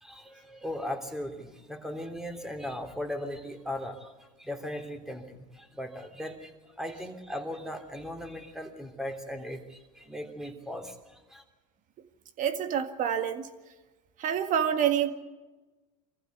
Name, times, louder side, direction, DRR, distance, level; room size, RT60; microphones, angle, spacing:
voice 1, 0.0-11.4, left 1 dB, 5° right, 5 dB, 3.2 m, -38 dB
voice 2, 12.4-13.5 14.2-15.1, right 9 dB, 45° right, 9 dB, 1.9 m, -27 dB
24.0 x 15.0 x 8.1 m, 1.2 s
hypercardioid pair, 95°, 18 cm